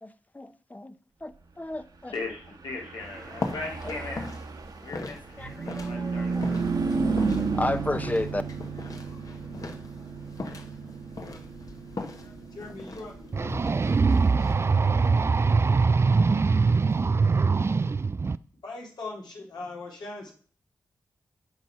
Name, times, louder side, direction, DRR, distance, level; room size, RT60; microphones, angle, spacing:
voice 1, 0.0-2.1 5.4-6.4 7.1-8.4, left 2 dB, 20° left, 11 dB, 0.7 m, -33 dB
voice 2, 2.1-4.2 4.8-6.6, left 3 dB, 85° left, -1 dB, 2.3 m, -38 dB
Car passing by / Truck, 2.6-16.3, right 4 dB, 60° right, 1.2 m, -33 dB
sound 1, 3.0-17.0, left 3 dB, 50° left, 1.1 m, -41 dB
voice 3, 12.2-13.7 18.6-20.3, left 3 dB, 70° left, -1 dB, 2.5 m, -40 dB
sound 2, 13.3-18.4, right 4 dB, 35° right, 0.3 m, -22 dB
8.0 x 4.1 x 5.6 m, 0.43 s
cardioid pair, 45°, 8 cm